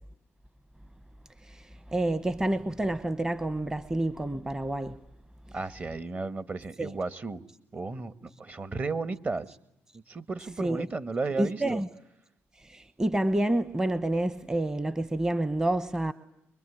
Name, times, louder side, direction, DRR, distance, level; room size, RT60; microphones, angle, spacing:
voice 1, 1.4-5.0 6.8-6.9 10.6-10.9 11.4-11.9 12.6-16.1, right 1 dB, 15° right, 1.1 m, -28 dB
voice 2, 5.5-7.4 7.7-9.5 10.1-11.8, right 3 dB, 35° right, 1.6 m, -34 dB
25.0 x 23.0 x 10.0 m
cardioid pair, 90°, 5 cm